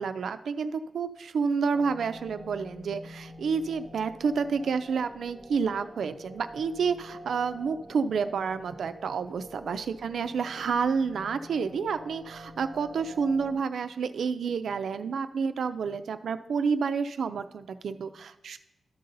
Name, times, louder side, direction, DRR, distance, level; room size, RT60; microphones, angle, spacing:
voice 1, 0.0-18.6, right 5 dB, 80° right, 11 dB, 0.4 m, -29 dB
sound 1, 1.7-13.5, equal, 15° left, 2.6 m, -47 dB
12.5 x 5.5 x 3.9 m, 0.91 s
wide cardioid pair, 155°, 0 cm